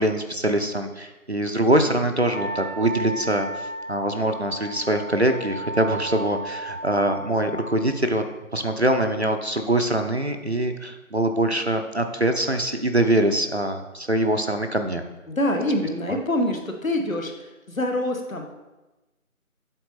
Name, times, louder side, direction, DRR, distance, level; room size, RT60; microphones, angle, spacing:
voice 1, 0.0-3.5 3.9-8.2 8.5-15.0, right 1 dB, 50° right, 6 dB, 0.5 m, -23 dB
Wind instrument woodwind instrument, 2.3-7.8, right 1 dB, 50° left, 0.9 m, -34 dB
voice 2, 15.3-17.3 17.7-18.6, left 1 dB, 70° left, 4 dB, 1.2 m, -25 dB
7.9 x 4.0 x 4.1 m, 1.1 s
figure-of-eight pair, 170°, 42 cm